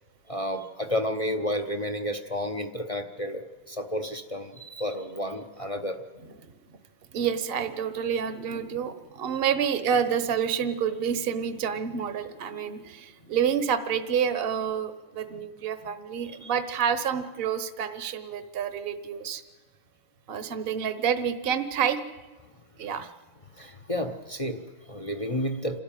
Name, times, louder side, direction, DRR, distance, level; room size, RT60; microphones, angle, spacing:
voice 1, 0.3-6.0 15.3-15.4 16.3-16.5 23.6-25.8, equal, 35° left, 5 dB, 0.5 m, -31 dB
voice 2, 7.1-19.4 20.3-22.0 22.8-23.1, right 7 dB, 40° right, 11 dB, 1.0 m, -28 dB
28.0 x 13.0 x 9.0 m, 1.3 s
omnidirectional pair, 2.1 m